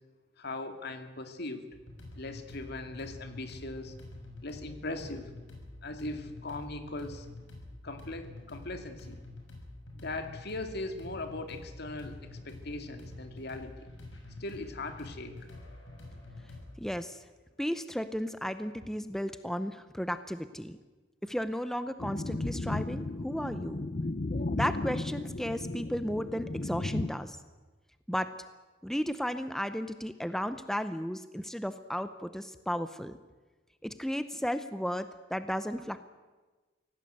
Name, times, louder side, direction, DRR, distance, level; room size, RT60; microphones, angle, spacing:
voice 1, 0.4-1.7 2.2-3.9 4.4-5.3 5.8-7.3 7.8-9.2 9.9-13.9 14.4-15.4, left 2 dB, 60° left, 7 dB, 2.3 m, -39 dB
sound 1, 1.7-16.8, left 2 dB, 75° left, 6.2 m, -47 dB
voice 2, 16.8-17.2 17.6-20.8 21.2-23.9 24.5-27.4 28.1-28.3 28.8-33.2 33.8-36.1, equal, ahead, 11 dB, 0.7 m, -34 dB
sound 2, 22.0-27.1, left 2 dB, 40° left, 0.8 m, -34 dB
24.5 x 17.5 x 7.9 m, 1.3 s
head